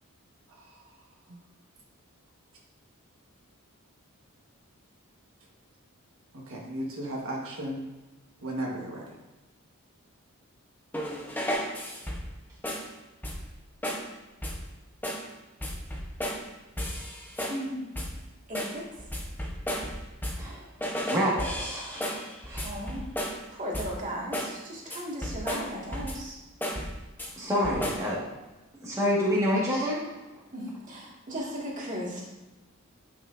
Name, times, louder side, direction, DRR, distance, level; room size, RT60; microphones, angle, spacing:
voice 1, 6.3-7.8 8.4-9.1, right 1 dB, 70° right, -2 dB, 1.4 m, -35 dB
sound 1, 10.9-12.3 12.6-12.9 13.2-13.6 13.8-14.1 14.4-14.7 15.0-15.3 15.6-16.5 16.8-17.7 17.9-18.2 18.5-20.5 20.8-23.5 23.7-24.0 24.3-24.6 24.9-26.3 26.6-27.3 27.6-28.1, equal, 10° left, 0.9 m, -34 dB
voice 2, 17.5-17.9 18.5-18.8 22.6-23.0 23.5-26.4 30.5-32.2, equal, 35° right, -4 dB, 1.9 m, -36 dB
voice 3, 21.1-22.7 27.4-28.3 28.8-30.0, equal, 15° right, -6 dB, 1.7 m, -28 dB
9.7 x 5.9 x 2.6 m, 1.1 s
head